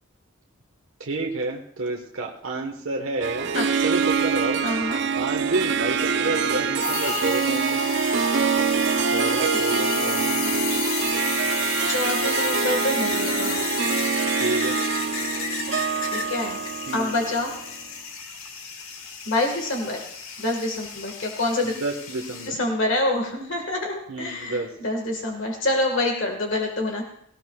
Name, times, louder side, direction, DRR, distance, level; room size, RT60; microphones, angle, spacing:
voice 1, 1.0-3.5 3.8-4.6 5.2-7.8 9.1-10.5 14.4-14.8 16.9-17.1 21.6-22.6 24.1-24.7, right 2 dB, 70° right, 0 dB, 1.2 m, -29 dB
Harp, 3.2-17.7, right 6 dB, 55° right, 0.5 m, -25 dB
voice 2, 4.6-5.0 9.5-10.1 11.9-13.6 16.1-16.6 16.9-17.5 19.2-20.1 20.4-21.7 22.5-27.0, left 2 dB, 60° left, 1 dB, 1.6 m, -26 dB
sound 1, 6.7-22.5, left 5 dB, 80° left, 1.7 m, -31 dB
18.5 x 17.5 x 2.3 m, 0.73 s
head